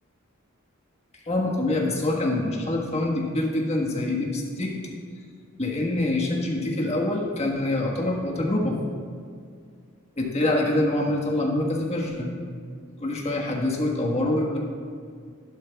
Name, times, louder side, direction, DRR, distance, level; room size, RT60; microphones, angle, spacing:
voice 1, 1.3-4.7 5.6-8.8 10.2-12.3 13.0-14.6, left 1 dB, 30° left, -1 dB, 1.4 m, -25 dB
12.0 x 11.5 x 2.3 m, 2.1 s
head